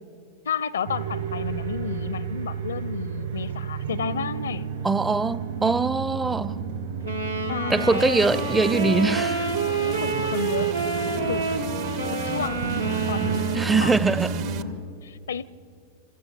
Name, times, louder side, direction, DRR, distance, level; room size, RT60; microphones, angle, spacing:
voice 1, 0.5-4.7 7.5-7.8 9.8-10.7 11.3-11.5 12.2-12.7 13.1-13.5 13.8-13.9 14.5-15.4, left 7 dB, 65° left, 0.5 m, -31 dB
sound 1, 0.9-14.6, right 6 dB, 65° right, 6.0 m, -32 dB
voice 2, 4.8-6.6 7.7-9.5 13.5-14.5, right 3 dB, 10° right, 0.5 m, -23 dB
Wind instrument woodwind instrument, 7.0-14.2, right 3 dB, 85° right, 1.8 m, -28 dB
sound 2, 7.8-14.6, right 9 dB, 45° right, 0.7 m, -38 dB
28.0 x 13.5 x 6.8 m
figure-of-eight pair, 90°, 0 cm